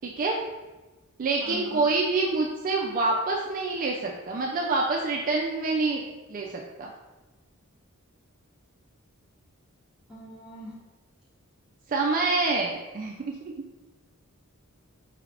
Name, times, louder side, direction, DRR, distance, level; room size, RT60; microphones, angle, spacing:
voice 1, 0.0-0.4 1.2-6.9 11.9-13.4, right 3 dB, 40° right, -1 dB, 0.4 m, -27 dB
voice 2, 1.4-1.8 10.1-10.8, left 2 dB, 5° right, -10 dB, 1.4 m, -41 dB
4.8 x 3.3 x 2.4 m, 1.1 s
head